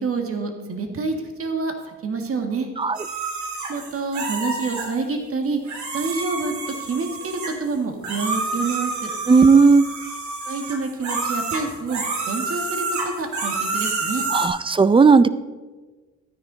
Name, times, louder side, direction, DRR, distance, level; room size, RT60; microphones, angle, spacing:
voice 1, 0.0-1.7 2.0-2.7 3.7-5.6 5.9-6.5 6.8-9.1 10.5-14.3, right 4 dB, 50° right, 5 dB, 1.8 m, -27 dB
sound 1, 2.9-4.9 5.6-7.7 8.0-14.5, right 3 dB, 70° right, 2.6 m, -28 dB
voice 2, 9.3-9.8 14.3-15.3, right 4 dB, 20° right, 15 dB, 0.4 m, -14 dB
12.5 x 9.6 x 3.9 m, 1.3 s
cardioid pair, 90°, 30 cm